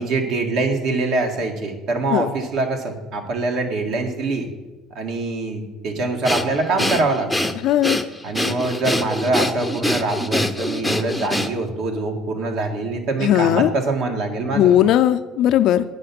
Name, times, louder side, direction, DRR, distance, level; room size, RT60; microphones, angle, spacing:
voice 1, 0.0-4.5 4.9-7.5 8.2-14.7, right 3 dB, 65° right, 3 dB, 1.5 m, -24 dB
Breathing, 6.2-11.8, left 1 dB, 5° left, 0.6 m, -24 dB
voice 2, 7.6-8.0 13.2-13.7 14.5-15.8, left 11 dB, 65° left, 9 dB, 0.5 m, -17 dB
8.6 x 5.6 x 5.9 m, 1.1 s
supercardioid pair, 95°, 0 cm